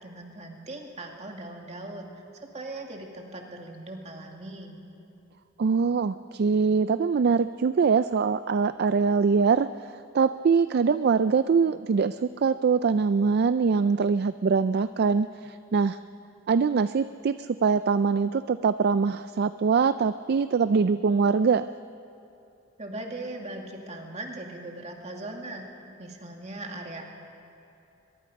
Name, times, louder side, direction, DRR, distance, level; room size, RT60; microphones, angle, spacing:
voice 1, 0.0-2.1 2.5-4.8 22.8-25.7 26.0-27.0, right 2 dB, 35° right, 1 dB, 2.3 m, -39 dB
voice 2, 5.6-16.0 16.5-21.7, right 5 dB, 55° right, 13 dB, 0.4 m, -23 dB
23.0 x 22.0 x 5.3 m, 2.8 s
head